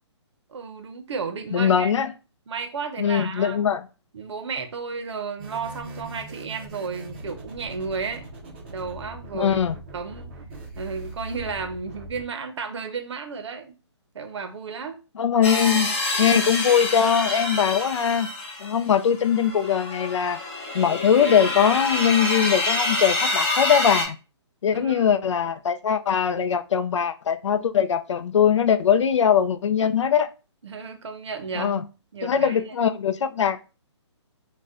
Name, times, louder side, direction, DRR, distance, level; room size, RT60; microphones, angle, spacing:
voice 1, 0.5-1.9 2.5-3.6 4.1-8.2 8.7-9.6 9.9-10.3 10.8-13.7 14.1-15.0 24.7-25.2 30.6-31.8 32.1-32.6, right 5 dB, 70° right, 0.6 m, -33 dB
voice 2, 1.5-2.1 3.0-3.9 9.3-9.8 15.2-18.3 18.6-20.4 20.7-24.2 24.6-30.3 31.5-31.8 32.2-33.6, left 8 dB, 80° left, 0.4 m, -21 dB
sound 1, 5.4-12.2, right 2 dB, 25° right, 0.5 m, -40 dB
sound 2, 15.4-24.1, left 2 dB, 25° left, 0.7 m, -27 dB
2.5 x 2.2 x 3.5 m
hypercardioid pair, 165°, 15 cm